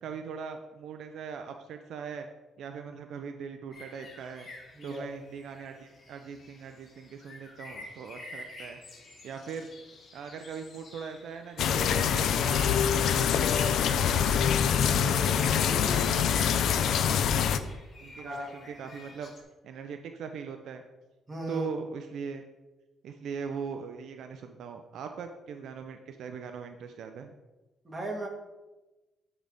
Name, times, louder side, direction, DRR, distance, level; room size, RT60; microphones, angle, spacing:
voice 1, 0.0-2.3 2.6-4.5 4.8-8.8 9.2-9.7 10.1-14.5 14.8-17.8 18.0-19.3 19.6-20.8 21.5-22.4 23.0-27.3, right 6 dB, 75° right, 6 dB, 0.5 m, -40 dB
sound 1, 3.7-19.4, left 2 dB, 50° left, 1.6 m, -48 dB
sound 2, 11.6-17.6, left 8 dB, 75° left, 0.4 m, -25 dB
voice 2, 18.2-18.6 21.3-21.7 27.9-28.3, right 1 dB, 20° right, -1 dB, 2.0 m, -36 dB
11.5 x 4.0 x 3.5 m, 1.1 s
cardioid pair, 90°, 0 cm